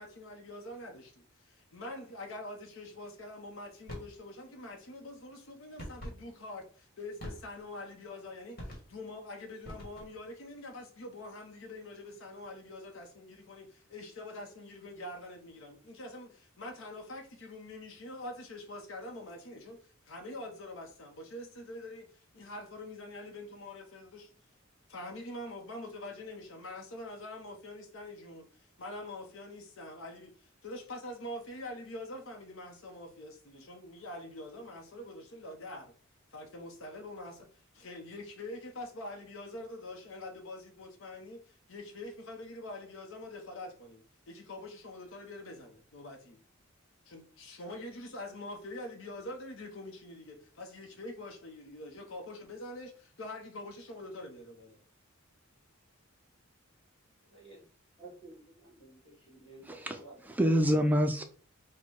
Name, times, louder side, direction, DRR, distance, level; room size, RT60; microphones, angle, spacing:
voice 1, 0.0-24.3 24.9-35.9 36.3-37.5 37.7-46.4 47.1-54.8, left 1 dB, 70° left, 0.8 m, -45 dB
sound 1, 3.9-4.2 5.8-6.2 7.2-7.7 8.6-9.0 9.6-10.2, equal, 45° left, 1.6 m, -44 dB
voice 2, 57.3-57.6 58.0-59.0 59.3-60.2, right 2 dB, 25° left, 2.0 m, -51 dB
voice 3, 59.8-61.2, equal, 10° right, 0.3 m, -27 dB
4.2 x 2.2 x 4.6 m
head